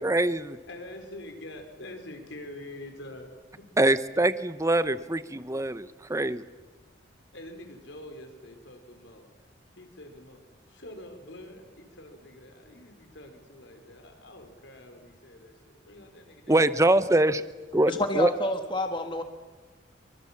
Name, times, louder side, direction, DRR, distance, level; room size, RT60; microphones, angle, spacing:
voice 1, 0.0-0.6 3.8-6.4 16.5-17.4 17.7-18.3, right 1 dB, 15° right, 14 dB, 0.8 m, -24 dB
voice 2, 0.7-3.3 3.5-3.7 7.3-9.3 9.8-10.4 10.7-15.5 15.8-16.8, left 1 dB, 70° left, 5 dB, 4.3 m, -45 dB
voice 3, 17.9-19.2, left 1 dB, 25° left, 6 dB, 1.4 m, -28 dB
25.5 x 24.5 x 7.3 m, 1.3 s
head